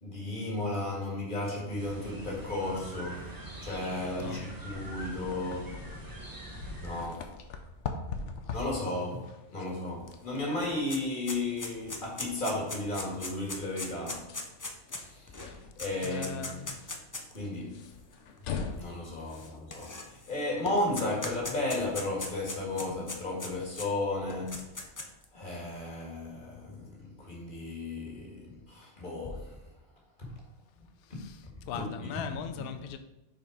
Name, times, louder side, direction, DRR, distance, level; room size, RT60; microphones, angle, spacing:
voice 1, 0.0-3.3 3.6-5.8 6.8-7.3 8.5-14.3 15.1-15.5 15.8-16.6 17.3-17.9 18.8-24.6 25.3-29.5 31.1-31.2 31.7-32.1, left 2 dB, 45° left, 1.9 m, -34 dB
sound 1, 1.8-7.1, right 1 dB, 20° right, 0.9 m, -44 dB
sound 2, 4.7-22.0, left 5 dB, 80° left, 1.0 m, -44 dB
sound 3, 10.1-10.2 10.4-17.4 18.1-18.2 19.3-20.3 20.7-23.9 24.3-25.2, left 2 dB, 25° left, 0.4 m, -39 dB
voice 2, 16.0-16.8 19.3-19.5 31.0-33.0, left 7 dB, 60° left, 0.7 m, -40 dB
6.0 x 4.3 x 4.7 m
omnidirectional pair, 1.2 m